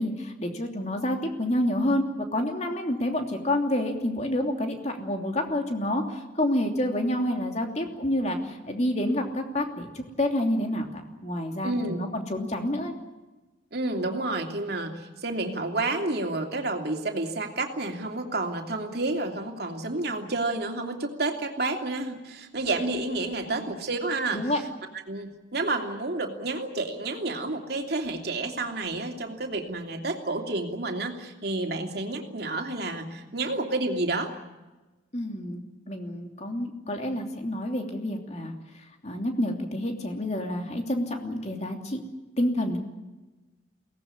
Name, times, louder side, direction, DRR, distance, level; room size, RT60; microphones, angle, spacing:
voice 1, 0.0-2.0 2.3-12.9 23.5-23.7 24.3-24.6 35.1-42.0 42.4-42.8, left 1 dB, 35° left, 3 dB, 3.0 m, -28 dB
voice 2, 11.6-12.0 13.7-24.5 25.1-34.3, right 2 dB, 55° right, 3 dB, 2.9 m, -30 dB
23.0 x 18.0 x 9.8 m, 1.1 s
head